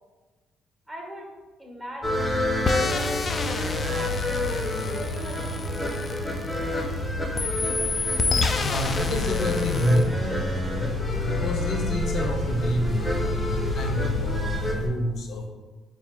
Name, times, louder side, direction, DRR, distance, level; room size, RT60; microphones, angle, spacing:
voice 1, 0.9-1.3 1.6-2.4 2.7-4.4 4.9-6.2, equal, 15° right, -1 dB, 1.2 m, -41 dB
sound 1, 2.0-14.7, left 2 dB, 20° left, 0.7 m, -28 dB
sound 2, 2.7-6.9 7.4-10.1, left 4 dB, 40° left, 0.3 m, -30 dB
sound 3, 7.7-14.9, right 3 dB, 65° right, 0.7 m, -35 dB
voice 2, 8.6-15.5, left 1 dB, 65° left, 3 dB, 0.7 m, -28 dB
4.2 x 2.1 x 4.4 m, 1.3 s
supercardioid pair, 75°, 0 cm